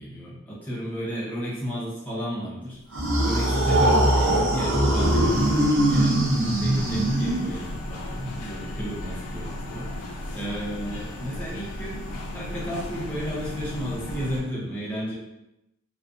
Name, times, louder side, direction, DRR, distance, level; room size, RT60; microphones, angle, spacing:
voice 1, 0.0-2.8 3.2-12.0 12.3-15.1, equal, 10° left, -6 dB, 0.5 m, -33 dB
sound 1, 2.9-7.7, right 1 dB, 55° right, 0.5 m, -21 dB
sound 2, 5.0-14.4, left 1 dB, 90° left, 0.4 m, -35 dB
2.4 x 2.1 x 2.4 m, 0.90 s
head